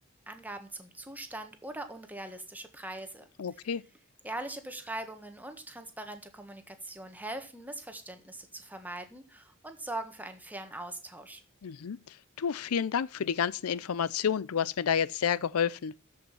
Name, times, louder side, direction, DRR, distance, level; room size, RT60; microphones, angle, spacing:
voice 1, 0.3-3.3 4.2-11.4, right 2 dB, 10° right, 1.5 m, -41 dB
voice 2, 3.4-3.8 11.6-15.9, left 7 dB, 90° left, 0.5 m, -30 dB
13.0 x 5.6 x 5.6 m
head